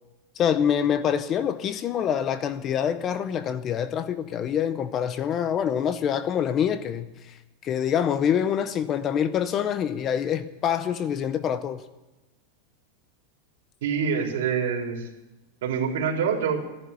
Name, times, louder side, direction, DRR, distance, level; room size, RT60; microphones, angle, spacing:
voice 1, 0.4-7.1 7.6-11.8, left 8 dB, 25° left, 0.6 m, -25 dB
voice 2, 13.8-15.1 15.6-16.7, right 6 dB, 70° right, 3.8 m, -26 dB
14.5 x 11.0 x 8.4 m
supercardioid pair, 165°, 0 cm